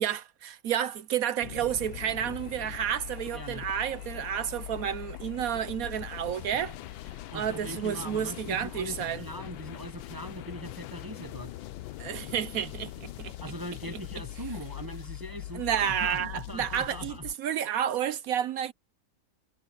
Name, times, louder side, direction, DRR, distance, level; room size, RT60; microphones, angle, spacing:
voice 1, 0.0-6.8 7.3-9.2 12.0-13.3 15.5-18.7, right 9 dB, 65° right, 0.9 m, -30 dB
sound 1, 1.4-17.3, left 15 dB, 85° left, 1.4 m, -42 dB
sound 2, 1.7-16.0, left 3 dB, 50° left, 4.1 m, -59 dB
voice 2, 3.3-3.7 7.3-11.6 13.4-17.3, equal, 20° right, 0.5 m, -41 dB
omnidirectional pair, 2.1 m